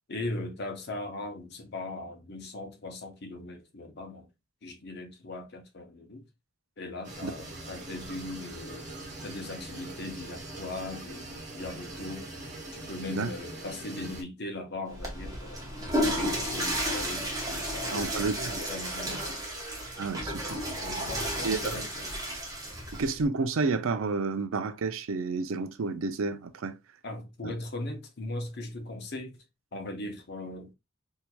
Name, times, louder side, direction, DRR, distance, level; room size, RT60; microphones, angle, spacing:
voice 1, 0.1-4.3 4.6-6.3 6.8-8.8 9.2-12.3 12.7-19.4 20.8-22.1 27.0-29.4 29.7-30.7, left 2 dB, 55° left, 0.8 m, -39 dB
sound 1, 7.0-14.2, right 2 dB, 35° right, 1.2 m, -42 dB
Water / Toilet flush, 14.9-23.2, equal, 20° right, 0.9 m, -32 dB
voice 2, 17.9-18.6 20.0-20.9 21.4-21.8 23.0-26.8 27.4-27.5, right 4 dB, 85° right, 0.5 m, -31 dB
4.4 x 2.7 x 2.2 m
head